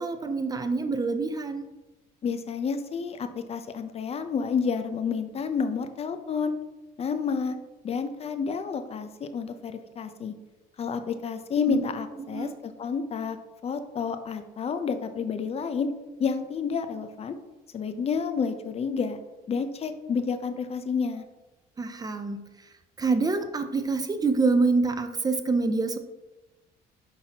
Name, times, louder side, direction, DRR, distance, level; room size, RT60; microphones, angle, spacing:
voice 1, 0.0-1.7 11.7-11.8 12.3-12.6 21.8-22.4 23.0-26.0, right 3 dB, 20° right, 8 dB, 0.5 m, -26 dB
voice 2, 2.2-6.5 7.0-7.5 7.8-10.3 10.8-13.4 13.6-15.9 16.2-17.4 17.7-19.2 19.5-21.2, left 5 dB, 35° left, 9 dB, 0.5 m, -30 dB
6.0 x 5.7 x 2.8 m, 1.0 s
cardioid pair, 110°, 17 cm